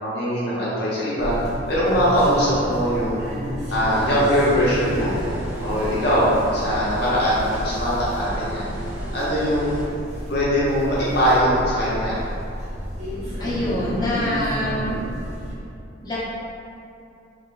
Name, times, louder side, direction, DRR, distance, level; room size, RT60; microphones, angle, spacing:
voice 1, 0.0-1.3 1.7-3.3 3.7-5.1 5.6-8.7 9.1-9.8 10.3-12.3, equal, 55° left, -9 dB, 0.7 m, -21 dB
sound 1, 1.2-15.5, equal, 35° right, 0.6 m, -31 dB
sound 2, 3.9-9.9, equal, 75° right, 1.1 m, -34 dB
voice 2, 13.4-15.0 16.0-16.2, left 1 dB, 20° left, -11 dB, 0.9 m, -25 dB
3.2 x 2.1 x 3.8 m, 2.6 s
head